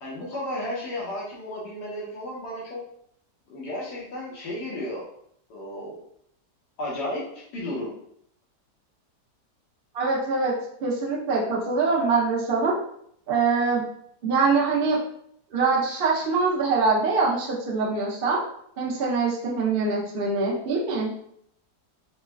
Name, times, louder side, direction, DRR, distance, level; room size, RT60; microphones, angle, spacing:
voice 1, 0.0-2.8 3.5-5.0 5.5-6.0 6.8-7.9, left 1 dB, 85° left, -5 dB, 1.6 m, -33 dB
voice 2, 9.9-10.5 10.8-12.8 13.3-13.8 14.2-15.0 15.5-18.4 18.8-21.1, right 4 dB, 60° right, -4 dB, 0.6 m, -23 dB
4.0 x 2.2 x 2.2 m, 0.68 s
omnidirectional pair, 1.8 m